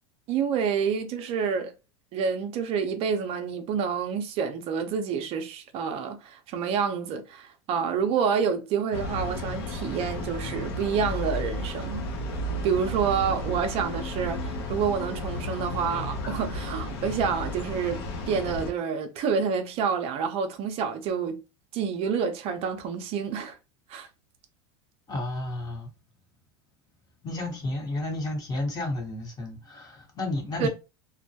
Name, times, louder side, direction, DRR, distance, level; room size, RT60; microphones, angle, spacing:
voice 1, 0.3-1.7 2.1-12.1 12.6-21.4 21.7-23.6 23.9-24.1 30.6-30.7, right 6 dB, 45° right, 0.5 m, -28 dB
sound 1, 8.9-18.7, left 1 dB, 75° left, 0.7 m, -33 dB
voice 2, 25.1-25.9 27.2-30.7, left 2 dB, 30° left, 1.0 m, -32 dB
2.2 x 2.1 x 2.7 m
supercardioid pair, 110°, 14 cm